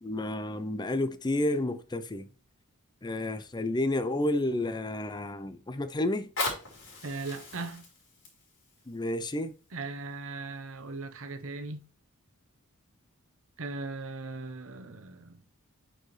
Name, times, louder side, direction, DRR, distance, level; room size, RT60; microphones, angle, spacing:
voice 1, 0.0-2.3 3.0-6.3 8.9-9.5, left 1 dB, 20° left, 0.5 m, -30 dB
Fire, 6.1-11.1 11.7-11.8, left 3 dB, 65° left, 4.0 m, -39 dB
voice 2, 7.0-7.8 9.7-11.9 13.6-15.4, right 3 dB, 65° right, 1.0 m, -38 dB
9.1 x 4.5 x 3.2 m
head